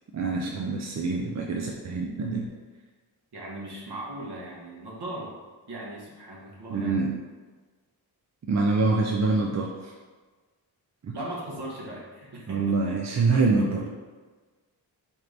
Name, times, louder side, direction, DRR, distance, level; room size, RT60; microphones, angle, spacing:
voice 1, 0.1-2.5 6.7-7.1 8.5-9.9 11.0-11.2 12.5-13.8, right 3 dB, 40° right, 0 dB, 0.5 m, -25 dB
voice 2, 3.3-5.3 5.7-7.0 11.1-13.7, right 1 dB, 60° right, -4 dB, 1.4 m, -38 dB
4.5 x 2.5 x 3.3 m, 1.4 s
cardioid pair, 45°, 45 cm